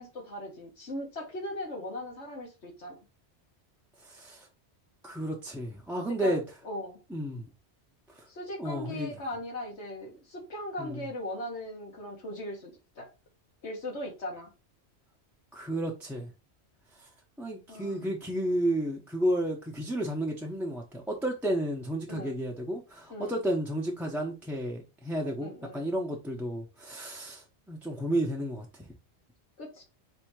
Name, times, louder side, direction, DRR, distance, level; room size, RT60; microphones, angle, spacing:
voice 1, 0.0-3.0 6.1-6.4 6.6-7.0 8.3-13.1 13.6-14.5 17.7-18.2 22.1-22.4 23.1-23.4 25.4-25.9 29.6-29.8, left 1 dB, 80° left, 1.7 m, -39 dB
voice 2, 4.1-4.5 5.0-6.4 7.1-7.5 8.2-8.3 8.6-9.1 10.8-11.0 15.5-16.3 17.0-17.1 17.4-28.9, right 1 dB, ahead, 0.6 m, -32 dB
4.3 x 2.7 x 4.5 m
omnidirectional pair, 1.1 m